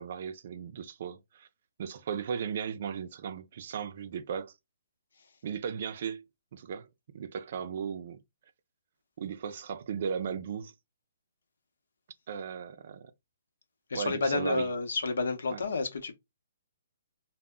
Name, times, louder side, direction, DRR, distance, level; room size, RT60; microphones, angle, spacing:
voice 1, 0.0-1.5 1.8-4.5 5.4-6.2 6.5-6.9 7.1-8.2 9.2-10.7 12.3-13.1 13.9-14.7 15.5-15.6, right 7 dB, 55° right, 0.4 m, -36 dB
voice 2, 13.9-16.1, left 3 dB, 75° left, 0.7 m, -30 dB
2.1 x 2.0 x 3.6 m
hypercardioid pair, 140°, 0 cm